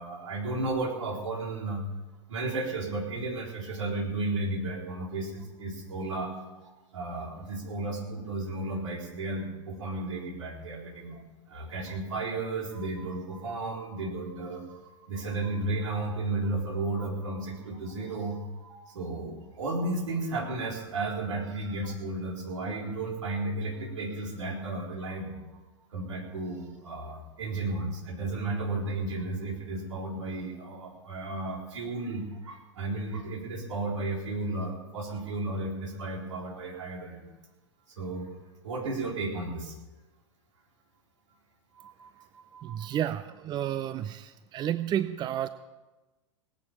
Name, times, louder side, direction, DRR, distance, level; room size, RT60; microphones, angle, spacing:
voice 1, 0.0-1.8 2.3-6.3 6.9-11.2 11.5-25.4 25.9-37.3 38.0-38.3 38.6-39.8 41.8-42.9, right 2 dB, 75° right, 1 dB, 3.9 m, -33 dB
voice 2, 42.6-45.5, right 10 dB, 30° right, 14 dB, 0.6 m, -31 dB
18.5 x 8.8 x 7.1 m, 1.1 s
figure-of-eight pair, 95°, 16 cm